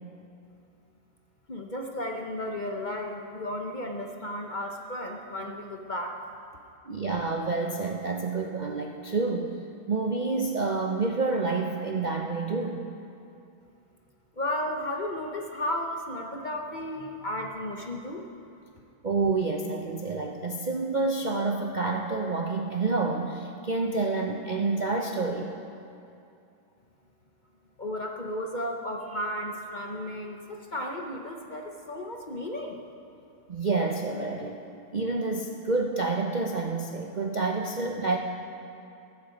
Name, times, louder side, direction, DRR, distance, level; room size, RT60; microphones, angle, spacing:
voice 1, 1.5-6.2 14.4-18.2 27.8-32.9, left 1 dB, 40° left, 2 dB, 0.7 m, -34 dB
voice 2, 6.9-9.6 9.9-12.8 19.0-25.5 33.5-34.6 34.9-38.2, right 3 dB, 90° right, 2 dB, 0.4 m, -28 dB
14.5 x 14.0 x 5.0 m, 2.6 s
omnidirectional pair, 1.9 m